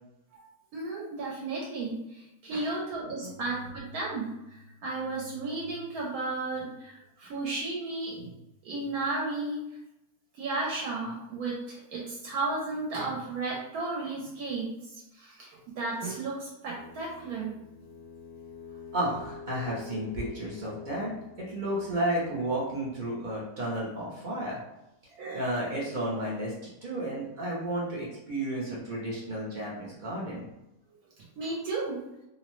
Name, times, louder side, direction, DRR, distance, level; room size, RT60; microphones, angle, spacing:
voice 1, 0.7-9.6 10.3-15.5 15.8-17.5 25.1-25.4 31.4-32.0, right 3 dB, 75° right, -3 dB, 1.0 m, -34 dB
sound 1, 16.8-23.3, left 5 dB, 75° left, 1.1 m, -48 dB
voice 2, 18.9-24.6 25.3-26.5 26.8-30.4, right 1 dB, 55° right, -6 dB, 0.5 m, -32 dB
2.6 x 2.0 x 2.9 m, 0.91 s
omnidirectional pair, 1.6 m